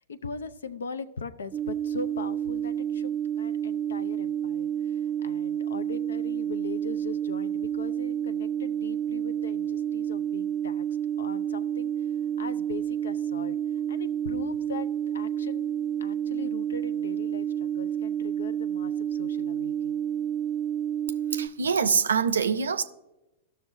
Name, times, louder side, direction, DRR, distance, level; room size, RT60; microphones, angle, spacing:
voice 1, 0.1-10.9 11.2-12.1 12.4-13.6 13.9-15.7 16.0-20.0, left 5 dB, 75° left, 0.5 m, -40 dB
sound 1, 1.5-21.5, right 9 dB, 20° right, 0.5 m, -30 dB
voice 2, 21.3-22.8, right 6 dB, 75° right, 0.5 m, -24 dB
14.0 x 6.3 x 2.6 m
figure-of-eight pair, 100°, 0 cm